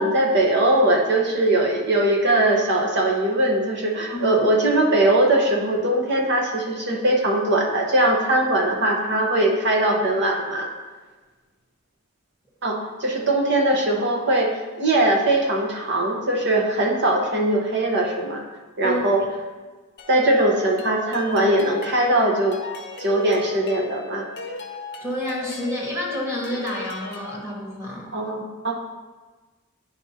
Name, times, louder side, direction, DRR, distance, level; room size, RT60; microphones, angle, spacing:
voice 1, 0.0-10.7 12.6-18.4 18.8-19.2 20.1-22.6 23.0-24.3 28.1-28.7, right 1 dB, 50° right, 0 dB, 1.0 m, -21 dB
voice 2, 4.1-4.4 18.8-19.0 25.0-28.1, equal, 15° right, -4 dB, 1.5 m, -29 dB
sound 1, 20.0-27.4, left 4 dB, 50° left, 0.7 m, -37 dB
9.7 x 4.8 x 2.8 m, 1.3 s
head